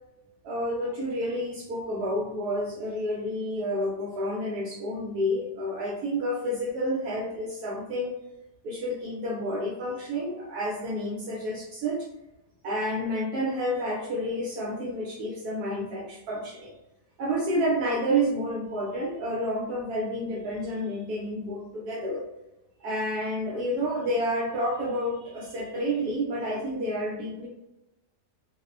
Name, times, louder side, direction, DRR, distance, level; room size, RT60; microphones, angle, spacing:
voice 1, 0.4-8.1 8.6-12.1 12.6-16.7 17.2-22.2 22.8-27.5, equal, 75° right, -4 dB, 1.1 m, -29 dB
2.9 x 2.0 x 2.4 m, 0.91 s
omnidirectional pair, 1.8 m